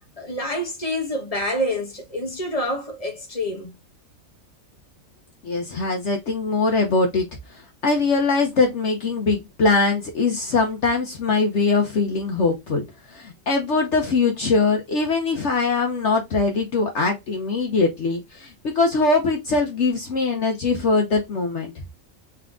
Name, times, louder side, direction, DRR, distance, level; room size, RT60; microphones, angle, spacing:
voice 1, 0.2-3.7, equal, 30° left, 1.0 m, -27 dB
voice 2, 5.4-7.3 7.8-21.7, left 3 dB, 60° left, 1.1 m, -22 dB
3.8 x 3.4 x 3.5 m
omnidirectional pair, 1.5 m